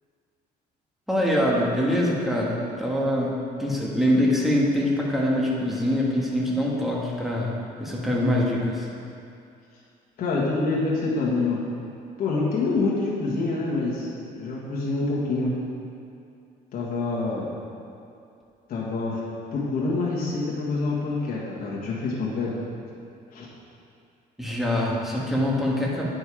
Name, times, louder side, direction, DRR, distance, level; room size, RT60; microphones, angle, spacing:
voice 1, 1.1-8.9 24.4-26.1, left 1 dB, ahead, -4 dB, 1.6 m, -24 dB
voice 2, 10.2-11.6 12.2-15.5 16.7-17.5 18.7-19.2 19.5-22.6 23.3-23.5, left 3 dB, 60° left, -6 dB, 1.6 m, -26 dB
9.2 x 5.4 x 4.9 m, 2.5 s
cardioid pair, 110°, 17 cm